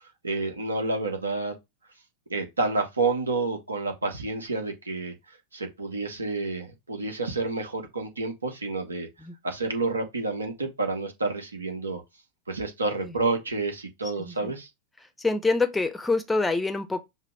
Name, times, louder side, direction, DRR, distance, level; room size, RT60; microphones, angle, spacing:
voice 1, 0.2-1.5 2.3-5.1 5.5-9.1 9.4-12.0 12.5-14.7, right 3 dB, 75° right, 1.1 m, -29 dB
voice 2, 14.2-14.5 15.2-17.0, left 3 dB, 10° left, 0.6 m, -26 dB
5.6 x 2.2 x 3.4 m
figure-of-eight pair, 90°, 0 cm